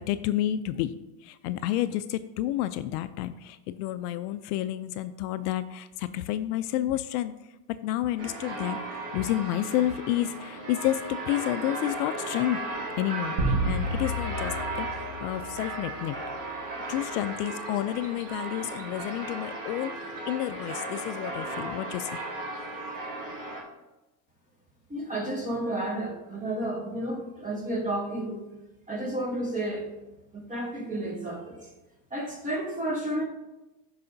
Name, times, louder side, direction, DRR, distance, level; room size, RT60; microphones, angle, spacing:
voice 1, 0.1-0.9 1.2-7.3 7.8-12.6 13.0-16.2 16.9-22.2, left 13 dB, 70° left, 12 dB, 0.5 m, -30 dB
sound 1, 8.2-23.6, right 2 dB, 40° right, 2.8 m, -36 dB
sound 2, 13.4-16.0, right 1 dB, 70° right, 1.9 m, -30 dB
voice 2, 24.9-28.4 28.9-29.9 30.3-31.6 32.1-33.2, right 1 dB, 15° right, 0 dB, 1.9 m, -31 dB
12.0 x 4.8 x 2.7 m, 1.0 s
supercardioid pair, 115°, 49 cm